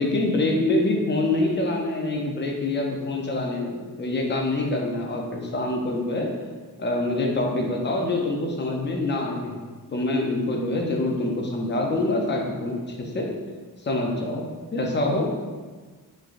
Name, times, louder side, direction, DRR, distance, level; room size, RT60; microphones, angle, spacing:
voice 1, 0.0-6.3 6.8-13.3 13.8-15.3, left 2 dB, 30° left, 0 dB, 0.4 m, -25 dB
3.6 x 3.1 x 2.4 m, 1.4 s
wide cardioid pair, 170°, 38 cm